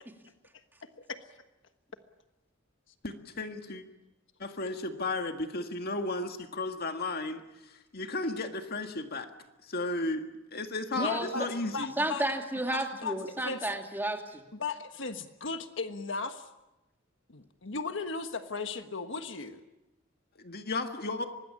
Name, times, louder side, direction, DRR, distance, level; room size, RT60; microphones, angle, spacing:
voice 1, 3.0-3.8 4.4-9.3 9.6-11.9 20.4-21.3, left 2 dB, 50° left, 6 dB, 1.9 m, -34 dB
voice 2, 11.0-12.2 12.7-13.7 14.5-16.5 17.3-19.6, left 4 dB, 70° left, 8 dB, 1.4 m, -36 dB
voice 3, 12.0-14.4, right 1 dB, 10° right, 3 dB, 2.5 m, -32 dB
24.5 x 20.0 x 8.7 m, 0.98 s
head